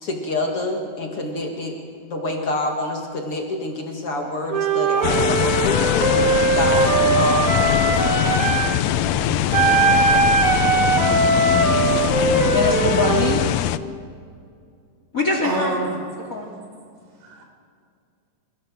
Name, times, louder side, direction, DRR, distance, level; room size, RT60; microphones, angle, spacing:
voice 1, 0.0-8.1, left 2 dB, 45° left, 2 dB, 2.4 m, -27 dB
Wind instrument woodwind instrument, 4.5-8.7 9.5-13.4, right 3 dB, 35° right, 1.4 m, -20 dB
sound 1, 5.0-13.8, left 11 dB, 85° left, 1.5 m, -22 dB
voice 2, 8.5-9.4 10.8-13.5 15.1-15.8 16.2-16.5, left 2 dB, 25° left, 2 dB, 2.6 m, -26 dB
voice 3, 15.4-16.0 17.2-17.4, right 2 dB, 75° right, 2 dB, 5.8 m, -26 dB
29.5 x 16.0 x 7.2 m, 2.2 s
omnidirectional pair, 3.9 m